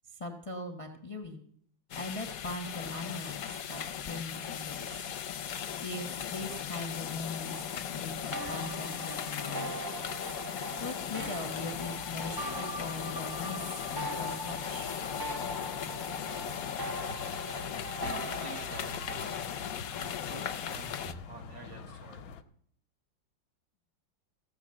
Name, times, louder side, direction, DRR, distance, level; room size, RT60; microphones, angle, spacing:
voice 1, 0.1-1.4 1.9-5.0 5.8-9.8 10.8-15.0, left 2 dB, 25° left, 4 dB, 0.8 m, -41 dB
sound 1, 1.9-21.1, left 9 dB, 60° left, 1.0 m, -38 dB
sound 2, 8.3-19.6, right 1 dB, 30° right, 0.4 m, -41 dB
sound 3, 11.2-22.4, left 5 dB, 85° left, 1.6 m, -47 dB
voice 2, 18.2-19.0 19.3-19.4 20.0-22.3, right 4 dB, 70° right, 3 dB, 2.7 m, -50 dB
15.5 x 6.5 x 7.6 m, 0.65 s
omnidirectional pair, 2.2 m